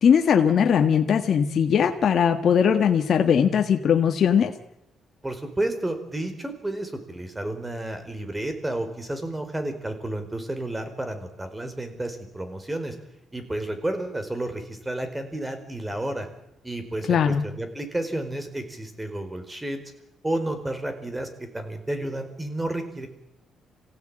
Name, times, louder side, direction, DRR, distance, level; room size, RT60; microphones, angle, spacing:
voice 1, 0.0-4.5 17.1-17.4, left 7 dB, 60° left, 5 dB, 1.7 m, -20 dB
voice 2, 5.2-12.9 13.3-16.3 16.6-19.8 20.2-23.1, right 1 dB, 15° right, 8 dB, 4.8 m, -31 dB
26.0 x 16.5 x 9.0 m, 0.83 s
cardioid pair, 90°, 0 cm